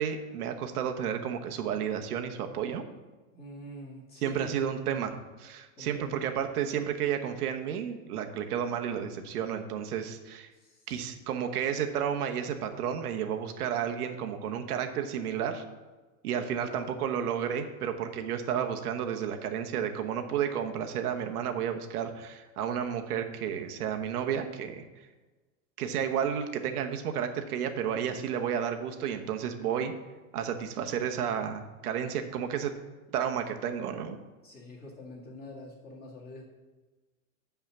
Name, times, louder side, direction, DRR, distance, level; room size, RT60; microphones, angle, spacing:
voice 1, 0.0-2.8 4.2-10.5 10.9-15.6 16.2-24.8 25.8-29.9 30.3-32.7 33.1-34.2, right 8 dB, 85° right, 5 dB, 1.1 m, -32 dB
voice 2, 3.3-4.9 5.8-6.2 10.5-10.9 16.5-17.0 34.4-36.4, left 2 dB, 20° left, -3 dB, 1.9 m, -45 dB
7.2 x 5.6 x 6.0 m, 1.2 s
supercardioid pair, 150°, 45 cm